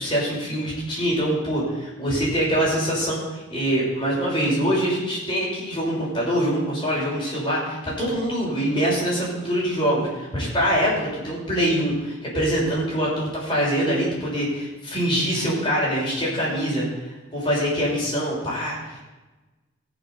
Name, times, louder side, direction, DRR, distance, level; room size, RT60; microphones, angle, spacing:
voice 1, 0.0-16.9 17.3-19.0, equal, 25° left, -5 dB, 6.2 m, -24 dB
17.0 x 7.2 x 7.0 m, 1.1 s
head